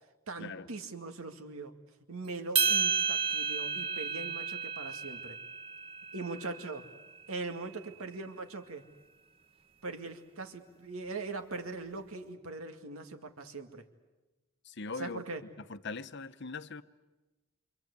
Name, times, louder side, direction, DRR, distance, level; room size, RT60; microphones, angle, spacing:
voice 1, 0.3-1.7 2.1-5.4 6.1-6.9 7.3-8.9 9.8-13.8 15.0-15.4, right 3 dB, 75° right, 6 dB, 2.1 m, -41 dB
sound 1, 2.6-7.0, right 6 dB, 25° right, 1.3 m, -32 dB
voice 2, 14.6-15.2 15.7-16.8, left 4 dB, 55° left, 11 dB, 0.9 m, -40 dB
27.5 x 26.0 x 8.2 m, 1.1 s
head